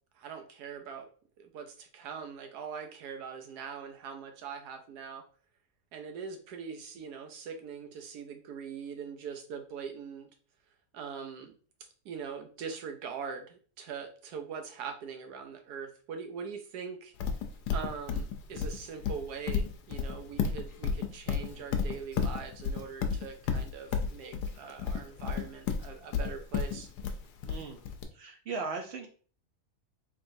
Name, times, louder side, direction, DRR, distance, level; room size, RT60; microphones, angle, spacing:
voice 1, 0.2-1.1 1.4-5.2 5.9-10.3 10.9-11.5 11.8-17.1 17.7-26.9, right 6 dB, 90° right, 6 dB, 1.3 m, -42 dB
Livestock farm animals working animals, 17.2-28.0, left 6 dB, 85° left, 1.2 m, -32 dB
voice 2, 27.5-27.8 28.1-29.1, right 4 dB, 65° right, 3 dB, 0.6 m, -37 dB
3.8 x 3.5 x 2.7 m, 0.41 s
omnidirectional pair, 1.6 m